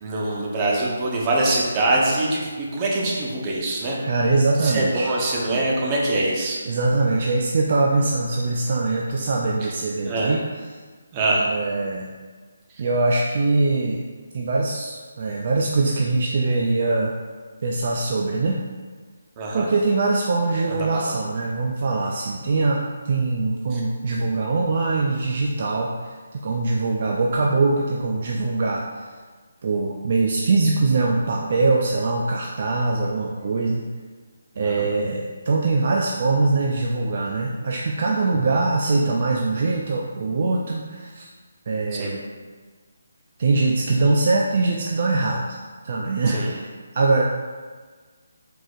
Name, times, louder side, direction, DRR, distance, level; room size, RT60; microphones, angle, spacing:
voice 1, 0.0-4.0 4.6-6.6 9.6-9.7 10.0-10.3 11.1-11.5 19.4-19.7 20.7-21.1 23.7-23.8 24.1-24.3 34.6-34.9 41.9-42.1 46.3-46.5, right 2 dB, 25° right, -3 dB, 0.9 m, -24 dB
voice 2, 4.0-5.1 5.5-5.6 6.7-10.4 11.5-12.1 12.8-14.0 14.3-17.1 17.6-18.6 19.5-29.0 29.6-33.8 34.6-41.3 41.7-42.2 43.4-45.6 45.8-46.7 46.9-47.2, right 3 dB, 50° right, -1 dB, 0.4 m, -22 dB
4.7 x 4.0 x 2.5 m, 1.5 s
figure-of-eight pair, 155°, 0 cm